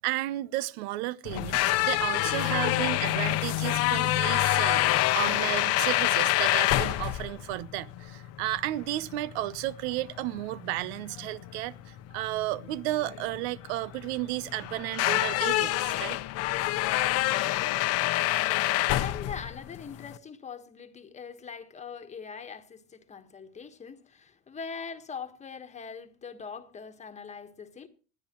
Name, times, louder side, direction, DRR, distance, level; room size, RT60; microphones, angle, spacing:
voice 1, 0.0-16.2, right 16 dB, 75° right, 0.8 m, -33 dB
sound 1, 1.2-20.2, left 16 dB, 50° left, 0.9 m, -27 dB
voice 2, 18.4-27.9, left 6 dB, 20° left, 1.4 m, -42 dB
20.5 x 13.0 x 3.0 m
supercardioid pair, 135°, 32 cm